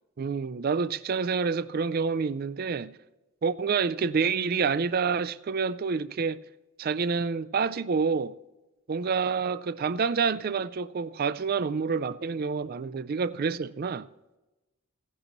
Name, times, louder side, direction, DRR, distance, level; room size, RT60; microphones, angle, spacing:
voice 1, 0.2-2.9 3.4-6.4 6.8-8.3 8.9-14.1, right 5 dB, 40° right, 0.3 m, -28 dB
16.5 x 11.0 x 3.0 m
head